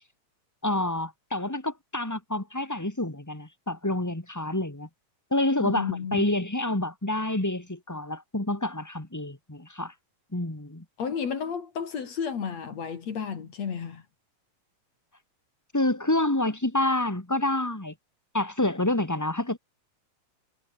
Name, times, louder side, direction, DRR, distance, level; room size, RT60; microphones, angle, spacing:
voice 1, 0.6-4.9 5.3-9.9 10.3-10.8 15.7-17.9 18.3-19.6, left 1 dB, 5° left, 1.6 m, -28 dB
voice 2, 5.6-6.2 11.0-14.0, left 6 dB, 55° left, 3.4 m, -32 dB
omnidirectional pair, 3.9 m